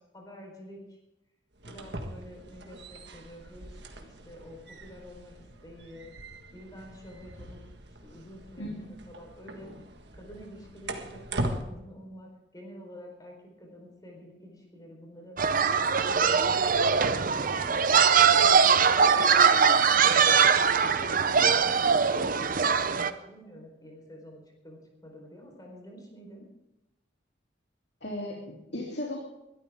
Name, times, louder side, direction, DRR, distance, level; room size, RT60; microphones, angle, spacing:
voice 1, 0.1-1.0 1.7-3.7 4.0-6.1 6.5-7.6 8.0-9.7 10.1-15.4 16.0-17.7 18.3-20.4 20.8-26.4, equal, 20° left, 1 dB, 4.4 m, -48 dB
sound 1, 1.5-11.6, right 1 dB, 65° right, 1.7 m, -40 dB
voice 2, 8.6-8.9 28.0-29.2, left 1 dB, 65° left, -3 dB, 3.1 m, -36 dB
sound 2, 15.4-23.1, right 6 dB, 50° right, 0.7 m, -22 dB
21.5 x 13.0 x 3.7 m, 0.91 s
head